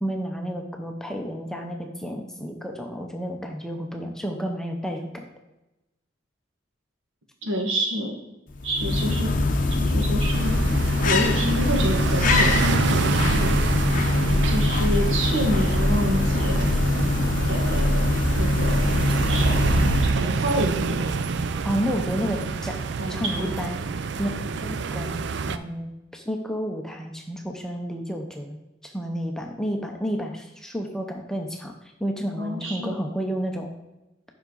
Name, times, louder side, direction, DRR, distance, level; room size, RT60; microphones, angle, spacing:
voice 1, 0.0-5.2 21.6-22.8 23.1-24.3 24.6-25.2 25.5-31.7 32.0-33.7, equal, 5° left, 2 dB, 0.6 m, -31 dB
voice 2, 7.4-8.2 8.6-9.3 9.7-10.6 11.0-13.6 14.4-16.8 17.5-18.1 18.4-18.9 19.3-19.7 20.0-21.1 23.0-23.6 32.4-33.0, equal, 75° right, 1 dB, 1.5 m, -28 dB
sound 1, 8.5-20.4, left 2 dB, 40° left, 0.7 m, -22 dB
sound 2, 10.3-25.6, right 4 dB, 60° right, 0.4 m, -27 dB
7.3 x 5.7 x 3.9 m, 0.97 s
head